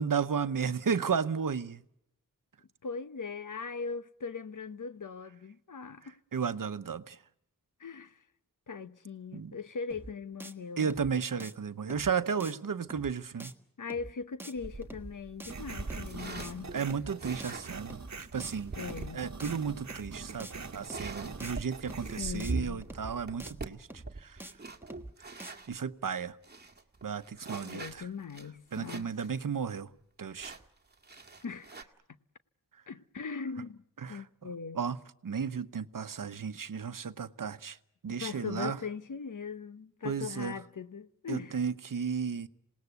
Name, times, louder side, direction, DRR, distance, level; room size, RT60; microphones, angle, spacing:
voice 1, 0.0-1.8 6.0-7.2 9.3-9.5 10.8-13.5 16.7-18.7 19.1-24.4 25.7-26.4 27.0-28.1 28.7-29.9 30.2-30.6 34.0-34.2 34.7-35.0 35.2-37.8 38.0-38.8 40.0-40.6 41.3-42.5, right 6 dB, 75° right, 0.9 m, -34 dB
voice 2, 2.8-6.2 7.8-8.2 8.7-10.9 13.8-16.8 18.7-19.2 22.2-22.8 27.5-29.1 31.4-31.8 32.9-33.8 34.1-34.8 38.2-41.6, left 5 dB, 65° left, 1.0 m, -40 dB
sound 1, 9.9-10.1 10.4-10.5 10.8-11.1 11.4-11.5 11.9-12.1 12.4-12.5 12.8-13.1 13.4-13.5 13.9-14.1 14.4-14.5 14.8-15.1 15.4-15.5 15.9-16.1 16.4-16.5 16.8-17.1 17.4-17.5 17.9-18.1 18.4-18.5 18.8-19.1 19.4-19.5 19.9-20.1 20.4-20.5 20.8-21.1 21.4-21.5 21.9-22.1 22.4-22.5 22.8-23.1 23.4-23.5 23.9-24.1 24.4-24.5 24.8-25.1 25.4-25.5, right 1 dB, 5° right, 1.5 m, -46 dB
sound 2, 14.6-25.7 26.2-26.3 26.4-29.3 29.6-29.7 30.4-31.8, right 3 dB, 30° right, 1.8 m, -43 dB
sound 3, 15.5-22.4, right 4 dB, 55° right, 1.3 m, -44 dB
27.0 x 19.0 x 8.1 m
wide cardioid pair, 80°, 33 cm